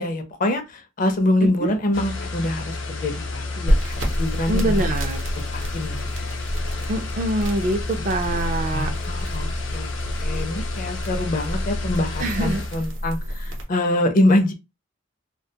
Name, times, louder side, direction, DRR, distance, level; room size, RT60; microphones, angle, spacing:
voice 1, 0.0-5.0 5.5-6.0 8.7-9.9 10.2-14.5, left 1 dB, 45° left, 0.5 m, -24 dB
sound 1, 1.9-12.9, left 3 dB, 90° left, 0.6 m, -31 dB
sound 2, 3.7-13.6, equal, 80° right, 0.7 m, -28 dB
voice 2, 4.5-5.2 6.9-8.9 12.2-12.6, right 1 dB, 40° right, 0.4 m, -24 dB
2.2 x 2.2 x 2.7 m
head